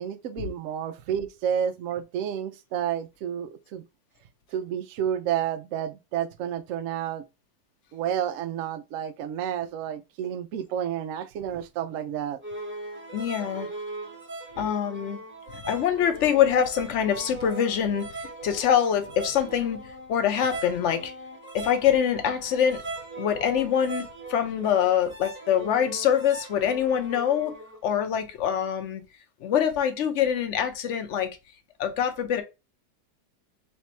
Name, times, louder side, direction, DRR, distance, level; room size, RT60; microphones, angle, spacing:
voice 1, 0.0-3.9 4.5-7.2 7.9-12.4, right 9 dB, 90° right, 0.7 m, -30 dB
sound 1, 12.4-27.8, right 2 dB, 15° right, 0.4 m, -40 dB
voice 2, 13.1-13.7 14.6-15.2 15.6-19.8 20.1-21.1 21.5-22.9 23.2-27.5 27.8-29.0 29.4-31.3 31.8-32.4, left 9 dB, 60° left, 0.7 m, -24 dB
3.4 x 2.8 x 4.1 m
omnidirectional pair, 2.0 m